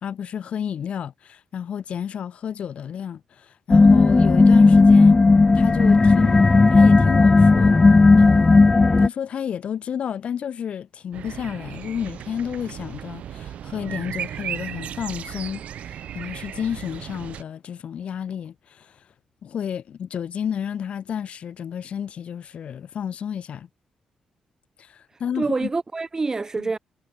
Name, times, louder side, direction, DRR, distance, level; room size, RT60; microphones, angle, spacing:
voice 1, 0.0-5.2 5.5-7.8 8.2-19.0 19.4-23.7 24.8-25.7 26.6-26.7, left 8 dB, 60° left, 2.2 m, -31 dB
sound 1, 3.7-9.1, left 3 dB, 25° left, 0.8 m, -14 dB
sound 2, 11.1-17.4, right 10 dB, 75° right, 2.4 m, -35 dB
voice 2, 25.1-26.8, right 3 dB, 25° right, 4.7 m, -27 dB
cardioid pair, 105°, 2 cm